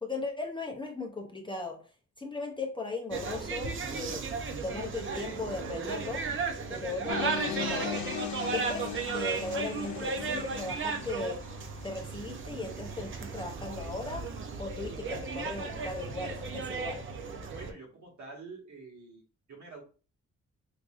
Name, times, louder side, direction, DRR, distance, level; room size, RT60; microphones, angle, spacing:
voice 1, 0.0-1.8 2.2-4.4 4.6-6.2 6.7-8.0 8.5-11.4 11.8-14.2 14.6-17.0, left 3 dB, 15° left, 0 dB, 0.5 m, -37 dB
sound 1, 3.1-17.7, right 5 dB, 45° right, 0.5 m, -35 dB
sound 2, 7.1-12.0, left 9 dB, 70° left, 0.6 m, -38 dB
voice 2, 17.5-19.2 19.5-19.8, right 3 dB, 70° right, -2 dB, 1.5 m, -47 dB
4.8 x 2.5 x 2.4 m, 0.37 s
wide cardioid pair, 165°, 30 cm